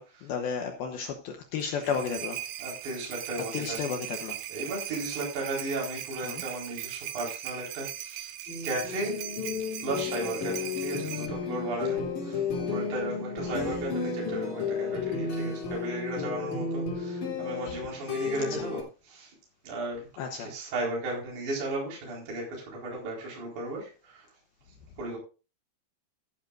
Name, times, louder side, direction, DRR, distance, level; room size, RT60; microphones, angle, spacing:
voice 1, 0.2-2.4 3.5-4.4 6.2-6.4 13.5-13.6 17.7-17.8 18.4-18.7 20.2-20.5, left 6 dB, 90° left, 2.1 m, -33 dB
sound 1, 1.6-11.3, right 13 dB, 85° right, 3.6 m, -39 dB
voice 2, 2.6-3.8 4.1-8.3 8.6-9.2 9.8-19.3 19.6-20.1 20.4-24.3 25.0-25.2, right 2 dB, 40° right, 5.5 m, -35 dB
sound 2, 8.5-18.8, left 5 dB, 45° left, 3.7 m, -33 dB
15.0 x 10.5 x 2.5 m
omnidirectional pair, 5.8 m